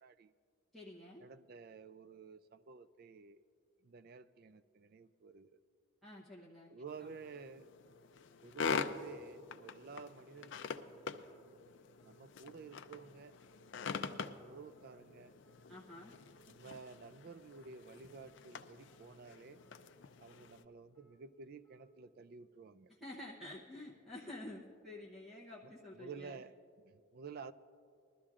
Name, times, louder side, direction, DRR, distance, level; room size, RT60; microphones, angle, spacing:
voice 1, 0.0-0.3 1.2-3.4 3.8-5.6 6.7-7.7 8.4-10.8 12.0-13.4 14.1-15.4 16.5-19.6 20.2-22.9 25.6-27.5, right 5 dB, 45° right, 14 dB, 0.3 m, -52 dB
voice 2, 0.7-1.2 6.0-6.7 7.0-7.1 15.7-16.1 22.9-26.4, left 1 dB, ahead, -9 dB, 0.9 m, -50 dB
sound 1, 6.9-20.6, left 5 dB, 60° left, 0.4 m, -45 dB
sound 2, 11.3-11.5 12.0-12.2 12.7-12.9 13.3-13.6 14.1-14.3 14.7-15.0 15.4-15.6 16.1-16.3 16.8-17.0 17.5-17.7 18.2-18.4 18.9-19.1 19.6-19.8 20.3-20.5 20.9-21.2 21.6-21.9, right 6 dB, 70° right, 3.6 m, -71 dB
20.5 x 13.0 x 2.4 m, 2.4 s
head